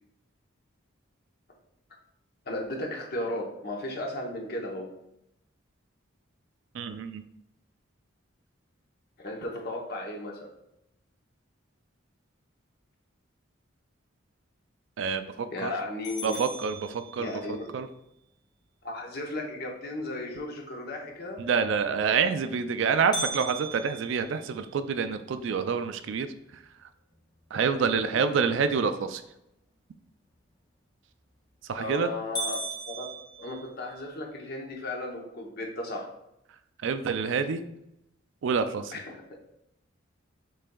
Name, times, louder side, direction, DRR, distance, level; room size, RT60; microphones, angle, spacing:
voice 1, 2.5-4.9 9.2-10.5 15.5-16.4 17.2-17.7 18.8-21.4 27.5-27.8 28.1-28.2 31.8-33.1 33.4-36.1 38.9-39.4, left 1 dB, 45° left, 0 dB, 0.8 m, -35 dB
voice 2, 6.7-7.2 15.0-15.7 16.2-17.9 21.4-26.3 27.5-29.2 31.7-32.1 36.8-37.6 38.4-39.0, right 6 dB, 65° right, 10 dB, 0.3 m, -27 dB
sound 1, 16.0-17.6 23.1-25.3 25.8-25.9 26.4-26.5 27.1-27.5 31.1-31.5 31.9-32.0 32.4-34.1, right 2 dB, 20° left, 0.6 m, -37 dB
6.3 x 3.4 x 2.3 m, 0.82 s
head